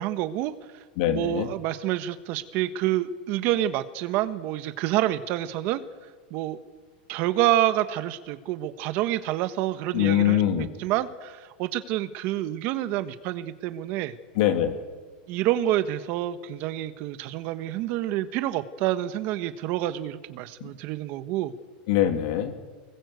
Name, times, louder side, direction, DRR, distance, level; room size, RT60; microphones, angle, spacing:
voice 1, 0.0-0.8 1.1-5.8 6.3-6.6 7.1-14.1 15.3-21.5, right 13 dB, 40° right, 11 dB, 1.3 m, -28 dB
voice 2, 1.0-1.5 9.9-10.7 14.3-14.8 20.6-20.7 21.9-22.5, left 11 dB, 55° left, 7 dB, 3.0 m, -23 dB
24.0 x 20.5 x 8.2 m, 1.5 s
supercardioid pair, 165°, 5 cm